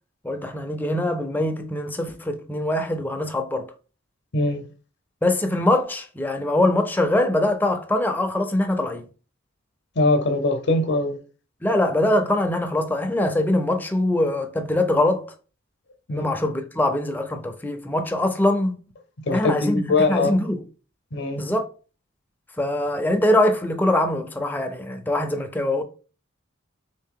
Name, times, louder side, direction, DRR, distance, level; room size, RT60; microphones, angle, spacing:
voice 1, 0.2-3.7 5.2-9.1 11.6-15.3 16.1-18.8 19.3-20.6 21.4-21.7 22.6-25.8, left 1 dB, 10° left, 0.4 m, -23 dB
voice 2, 4.3-4.6 10.0-11.2 16.1-16.3 19.3-20.3 21.1-21.4, left 2 dB, 55° left, 0.7 m, -22 dB
3.6 x 2.7 x 3.6 m
head